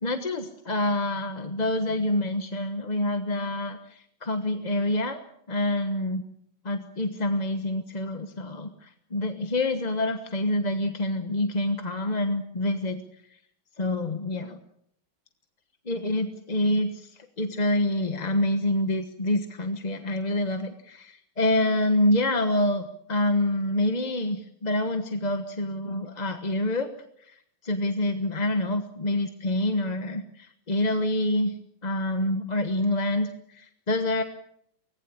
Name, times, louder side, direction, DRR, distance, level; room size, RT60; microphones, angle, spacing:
voice 1, 0.0-5.2 5.5-6.2 6.6-13.0 13.8-14.6 15.8-26.9 27.2-27.3 27.6-31.5 31.8-34.2, left 1 dB, 25° left, 7 dB, 1.1 m, -27 dB
24.5 x 19.0 x 8.6 m, 0.71 s
omnidirectional pair, 2.1 m